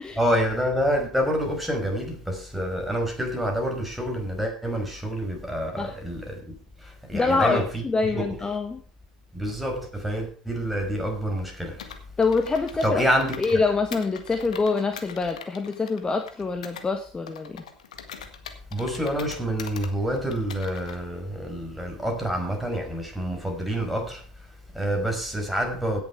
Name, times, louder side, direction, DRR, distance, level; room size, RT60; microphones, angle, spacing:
voice 1, 0.2-8.4 9.3-11.9 12.8-13.6 18.7-26.0, equal, ahead, 5.2 m, -28 dB
voice 2, 7.1-8.8 12.2-13.0 13.4-17.6, left 4 dB, 20° left, 1.6 m, -25 dB
Computer keyboard, 11.8-13.6 13.9-16.9 17.3-19.9 20.3-21.0, left 7 dB, 80° left, 1.7 m, -42 dB
16.5 x 7.5 x 4.7 m
hypercardioid pair, 70°, 4 cm